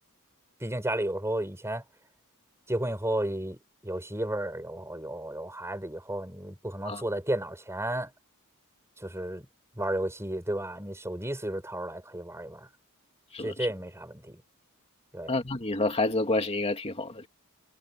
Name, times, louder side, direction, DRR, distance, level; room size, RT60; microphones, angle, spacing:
voice 1, 0.6-1.8 2.7-3.6 3.8-8.1 9.0-9.5 9.8-12.7 13.4-14.4 15.1-15.3, right 1 dB, 15° right, 5.1 m, -33 dB
voice 2, 15.3-17.3, left 2 dB, 30° left, 2.3 m, -28 dB
head